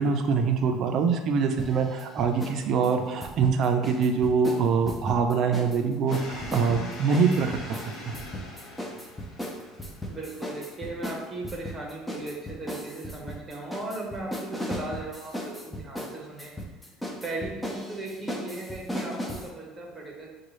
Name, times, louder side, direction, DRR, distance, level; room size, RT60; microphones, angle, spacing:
voice 1, 0.0-7.5 8.1-8.2, right 5 dB, 50° right, 5 dB, 0.5 m, -24 dB
sound 1, 1.6-2.6 2.8-5.8 6.1-19.5, equal, 10° left, 0.6 m, -36 dB
sound 2, 6.1-12.5, left 2 dB, 55° left, 0.9 m, -43 dB
voice 2, 10.1-16.5 17.2-20.3, right 2 dB, 15° right, -2 dB, 1.0 m, -37 dB
6.1 x 2.3 x 3.1 m, 1.1 s
cardioid pair, 140°, 0 cm